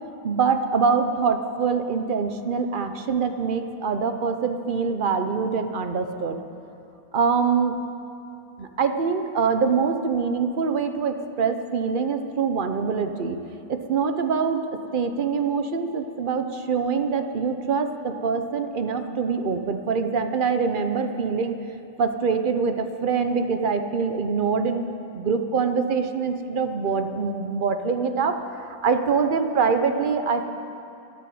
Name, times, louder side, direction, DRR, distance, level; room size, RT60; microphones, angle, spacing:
voice 1, 0.2-6.4 7.1-7.8 8.6-13.4 13.7-14.6 14.9-21.6 22.0-24.9 25.1-30.4, right 5 dB, 55° right, 7 dB, 0.5 m, -24 dB
13.0 x 13.0 x 7.8 m, 2.6 s
omnidirectional pair, 1.9 m